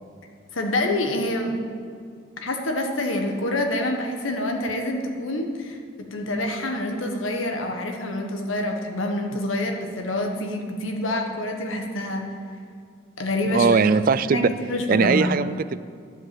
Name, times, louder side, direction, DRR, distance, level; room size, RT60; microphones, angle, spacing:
voice 1, 0.5-1.5 2.4-12.3 13.2-13.8 14.2-15.3, left 1 dB, 90° left, 3 dB, 1.5 m, -27 dB
voice 2, 13.5-14.5 14.9-15.8, right 5 dB, 45° right, 15 dB, 0.4 m, -20 dB
11.0 x 7.8 x 7.7 m, 2.2 s
head